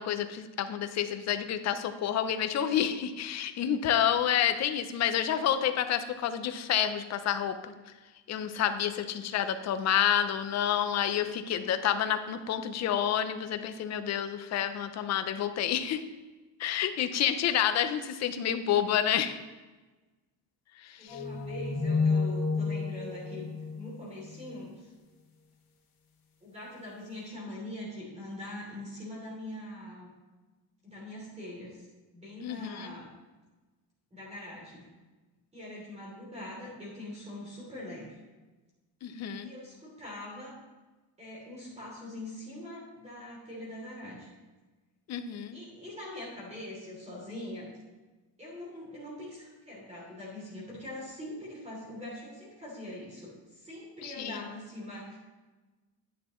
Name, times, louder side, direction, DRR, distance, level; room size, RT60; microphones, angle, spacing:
voice 1, 0.0-7.7 8.3-16.0 16.6-19.4 20.8-21.2 32.4-32.9 39.0-39.5 45.1-45.6 54.0-54.4, left 9 dB, 40° left, 9 dB, 0.5 m, -29 dB
voice 2, 21.0-24.9 26.4-30.1 30.8-31.9 32.1-33.1 34.1-34.9 35.5-38.2 39.4-40.5 41.2-44.3 45.5-47.7 48.4-55.2, left 1 dB, 15° right, -5 dB, 2.9 m, -43 dB
sound 1, 21.1-24.5, left 4 dB, 75° left, 3.2 m, -30 dB
10.0 x 9.1 x 3.1 m, 1.2 s
cardioid pair, 170°, 45 cm